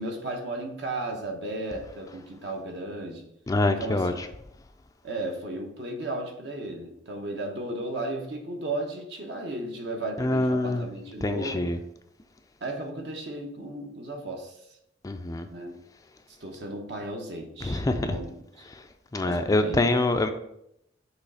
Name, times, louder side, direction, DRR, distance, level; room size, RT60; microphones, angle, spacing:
voice 1, 0.0-3.3 3.7-4.2 5.0-11.7 12.6-14.6 15.5-15.7 16.3-18.7 19.2-19.9, right 2 dB, 65° right, 2 dB, 1.1 m, -35 dB
voice 2, 3.5-4.1 10.2-10.8 11.2-11.8 15.0-15.5 17.7-18.2 19.1-20.3, left 2 dB, 20° left, 7 dB, 0.3 m, -25 dB
6.2 x 3.2 x 5.5 m, 0.79 s
head